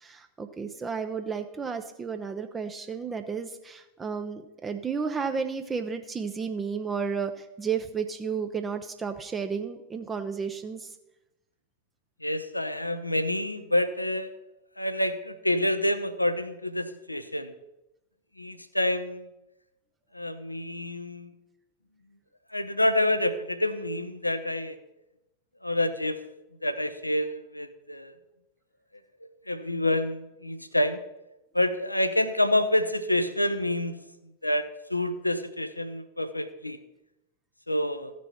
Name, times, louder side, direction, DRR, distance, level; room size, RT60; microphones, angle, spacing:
voice 1, 0.0-11.0, right 6 dB, 20° right, 7 dB, 0.6 m, -32 dB
voice 2, 12.2-14.3 14.8-17.5 18.4-19.3 20.1-21.3 22.5-24.8 25.6-26.2 26.6-28.1 29.5-31.0 31.5-34.0 34.4-36.8 37.7-38.1, left 1 dB, 85° left, 12 dB, 0.7 m, -27 dB
14.5 x 6.2 x 4.3 m, 0.93 s
figure-of-eight pair, 90°, 0 cm